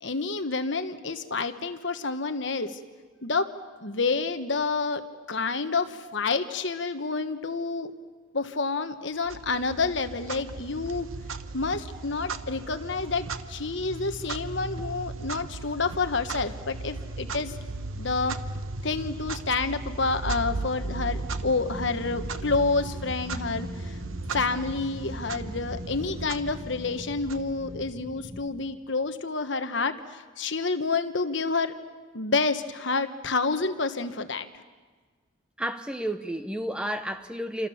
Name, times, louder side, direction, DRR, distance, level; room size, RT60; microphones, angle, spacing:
voice 1, 0.0-2.8 3.2-3.5 3.8-7.9 8.3-11.1 11.5-17.6 18.0-18.4 18.8-24.0 24.3-31.8 32.1-34.5, left 4 dB, 60° left, 1.3 m, -29 dB
Clock, 9.3-28.0, right 3 dB, 80° right, 1.0 m, -37 dB
sound 1, 20.4-28.4, left 1 dB, 40° right, 7.9 m, -42 dB
voice 2, 35.6-37.7, right 1 dB, 5° right, 0.8 m, -31 dB
28.0 x 26.5 x 7.2 m
head